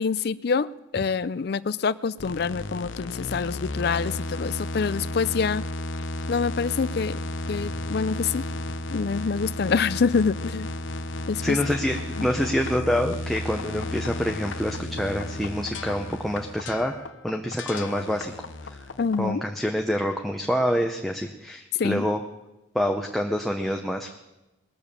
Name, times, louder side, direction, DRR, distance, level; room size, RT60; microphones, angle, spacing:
voice 1, 0.0-5.7 6.3-7.2 7.5-8.5 8.9-10.7 11.3-11.6 12.2-12.3 19.0-19.4 21.8-22.1, left 5 dB, 55° left, 18 dB, 0.4 m, -26 dB
sound 1, 2.2-19.3, left 2 dB, 80° left, 0.8 m, -33 dB
voice 2, 11.4-16.9 17.2-18.3 18.6-18.9 19.2-22.2 22.7-24.1, equal, ahead, 2 dB, 0.7 m, -26 dB
21.0 x 7.0 x 6.8 m, 0.99 s
head